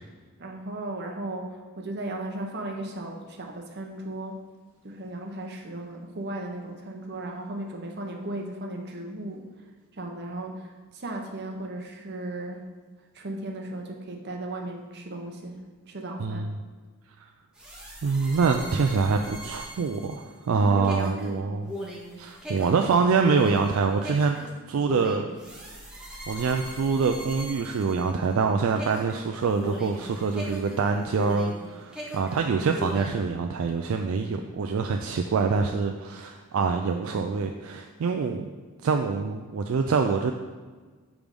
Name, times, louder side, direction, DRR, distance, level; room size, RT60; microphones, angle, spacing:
voice 1, 0.4-4.4 4.8-9.4 10.0-12.6 13.1-15.6 15.9-16.4 20.5-21.5, right 1 dB, 50° right, 2 dB, 0.8 m, -36 dB
voice 2, 16.2-16.6 18.0-21.7 22.2-24.4 24.7-25.3 26.3-38.5 38.8-40.3, right 5 dB, 65° right, 4 dB, 0.3 m, -25 dB
sound 1, 17.5-28.4 28.8-31.6 31.9-33.2, equal, 5° right, 0.9 m, -39 dB
6.1 x 3.5 x 5.2 m, 1.4 s
head